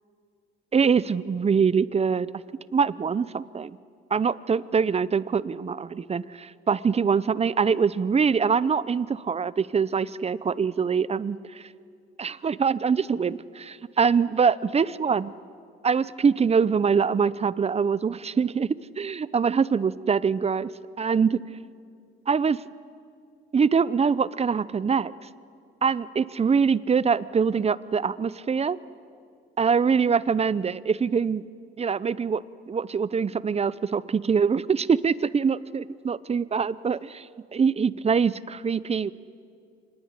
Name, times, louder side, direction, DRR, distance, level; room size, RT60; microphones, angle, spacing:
voice 1, 0.7-2.3 2.7-3.8 4.1-11.7 12.2-15.3 15.8-20.7 21.0-21.4 22.3-22.6 23.5-25.1 25.8-28.8 29.6-31.4 31.8-37.3 37.5-39.1, right 6 dB, 30° right, 18 dB, 0.7 m, -24 dB
25.5 x 19.5 x 9.9 m, 2.3 s
cardioid pair, 90°, 20 cm